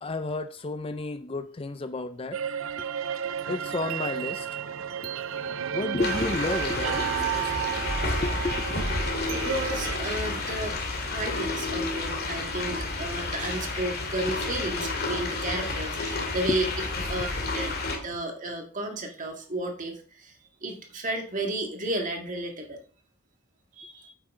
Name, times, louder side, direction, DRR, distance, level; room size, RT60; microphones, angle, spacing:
voice 1, 0.0-2.4 2.8-2.9 3.5-4.6 5.5-9.1 14.3-14.4, left 3 dB, 25° left, 0.4 m, -33 dB
sound 1, 2.3-10.0, right 9 dB, 65° right, 0.4 m, -32 dB
sound 2, 6.0-18.0, left 3 dB, 45° left, 2.1 m, -30 dB
voice 2, 9.3-10.8 11.1-16.7 17.1-17.7 18.0-22.8 23.8-24.1, right 1 dB, 35° right, 1.9 m, -33 dB
8.8 x 8.0 x 3.7 m
head